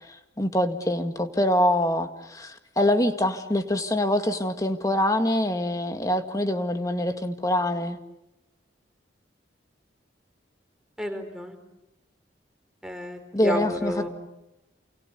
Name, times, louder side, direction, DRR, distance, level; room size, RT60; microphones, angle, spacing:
voice 1, 0.4-8.0 13.3-14.1, left 1 dB, 20° left, 7 dB, 2.0 m, -24 dB
voice 2, 11.0-11.5 12.8-14.1, equal, 5° right, 5 dB, 4.1 m, -31 dB
29.0 x 29.0 x 7.0 m, 0.91 s
head